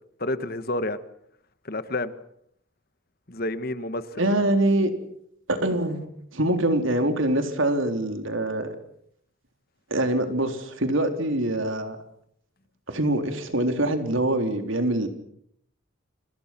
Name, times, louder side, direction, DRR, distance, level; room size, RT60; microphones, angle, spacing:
voice 1, 0.2-1.0 1.6-2.1 3.3-4.3, left 2 dB, 45° left, 12 dB, 1.5 m, -29 dB
voice 2, 4.2-4.9 5.5-8.8 9.9-12.0 12.9-15.1, right 1 dB, 65° right, 7 dB, 3.8 m, -24 dB
29.5 x 26.5 x 6.1 m, 0.70 s
head